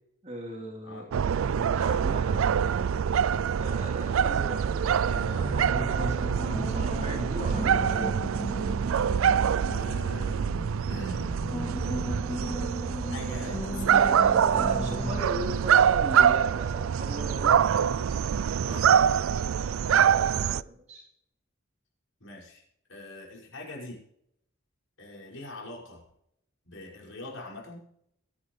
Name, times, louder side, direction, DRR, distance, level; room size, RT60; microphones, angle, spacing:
voice 1, 0.2-1.1 1.7-2.4 3.6-8.2 13.5-13.6 13.9-17.6 20.1-21.1, equal, 35° right, 0 dB, 3.3 m, -39 dB
sound 1, 1.1-20.6, right 8 dB, 80° right, 0.4 m, -25 dB
sound 2, 5.3-15.3, left 1 dB, 10° left, 0.4 m, -36 dB
voice 2, 9.6-11.3 13.1-14.2 14.5-14.6 18.7-19.3 22.2-22.6 22.9-24.0 25.0-26.0 26.6-27.8, left 1 dB, 70° left, -3 dB, 6.0 m, -43 dB
23.0 x 9.6 x 3.2 m, 0.73 s
head